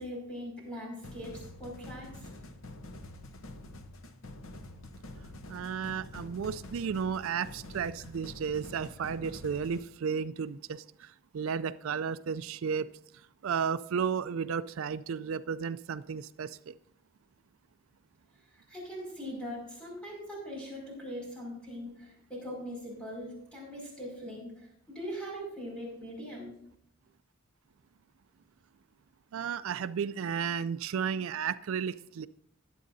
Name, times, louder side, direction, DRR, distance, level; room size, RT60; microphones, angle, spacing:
voice 1, 0.0-2.3 18.7-26.5, equal, 5° left, -3 dB, 5.3 m, -41 dB
sound 1, 1.0-9.8, left 1 dB, 70° left, 0.9 m, -47 dB
voice 2, 5.5-12.9 13.4-16.7 29.3-32.3, right 6 dB, 75° right, 14 dB, 0.4 m, -33 dB
20.5 x 8.4 x 2.7 m, 0.74 s
head